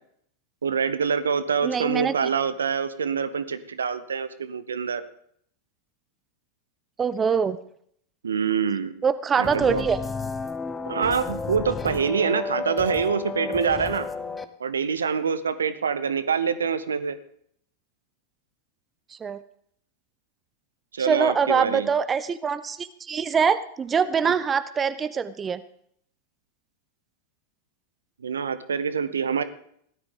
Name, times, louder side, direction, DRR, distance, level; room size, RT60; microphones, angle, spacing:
voice 1, 0.6-5.0 8.2-8.9 9.4-9.8 10.9-14.1 14.6-17.2 20.9-21.9 24.3-24.4 28.2-29.4, right 6 dB, 70° right, 13 dB, 0.9 m, -25 dB
voice 2, 1.6-2.3 7.0-7.6 9.0-10.0 19.1-19.4 21.0-25.6, right 6 dB, 20° right, 14 dB, 0.6 m, -24 dB
sound 1, 9.4-14.4, left 4 dB, 15° left, 0.9 m, -32 dB
17.0 x 12.5 x 3.8 m, 0.66 s
figure-of-eight pair, 90°, 0 cm